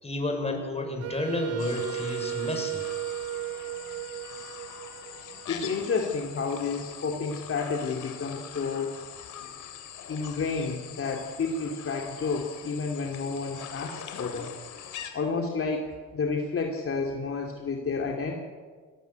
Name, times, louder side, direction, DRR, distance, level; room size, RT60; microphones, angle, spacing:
voice 1, 0.0-2.8, left 2 dB, 20° left, 3 dB, 5.9 m, -31 dB
Wind instrument woodwind instrument, 1.0-5.9, right 15 dB, 55° right, 0.7 m, -35 dB
sound 1, 1.6-15.1, left 9 dB, 85° left, 3.0 m, -43 dB
voice 2, 5.5-9.0 10.1-14.5 15.1-18.4, left 4 dB, 45° left, 1 dB, 2.7 m, -30 dB
20.5 x 18.0 x 8.2 m, 1.6 s
cardioid pair, 90°, 30 cm